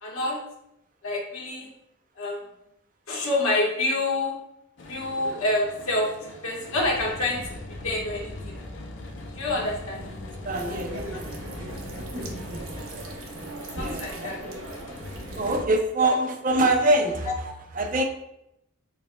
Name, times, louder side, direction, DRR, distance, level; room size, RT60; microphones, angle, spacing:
voice 1, 0.0-0.4 1.0-1.7 2.2-2.4 3.1-4.3 4.9-6.1 6.4-7.4 7.8-8.6 9.3-10.0 11.1-11.2 13.7-14.4 16.0-16.2 16.6-16.7, left 2 dB, 80° left, -2 dB, 1.3 m, -27 dB
sound 1, 4.8-15.7, left 1 dB, 55° left, 0.6 m, -40 dB
voice 2, 10.2-11.3 13.7-14.6 15.3-18.0, right 2 dB, 40° right, 4 dB, 0.5 m, -25 dB
sound 2, 10.5-15.6, right 1 dB, 80° right, 0.9 m, -38 dB
6.7 x 3.5 x 2.2 m, 0.81 s
head